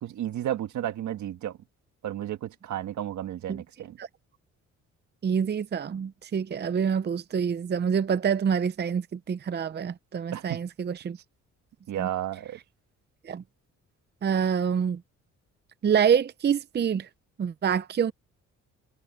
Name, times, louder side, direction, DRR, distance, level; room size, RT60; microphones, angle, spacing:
voice 1, 0.0-1.6 2.0-4.0 10.3-10.6 11.9-12.6, right 11 dB, 70° right, 1.8 m, -32 dB
voice 2, 5.2-11.2 12.0-12.1 13.3-13.4 14.2-15.0 15.8-17.1 17.4-18.1, right 7 dB, 35° right, 0.7 m, -26 dB
cardioid pair, 90°, 30 cm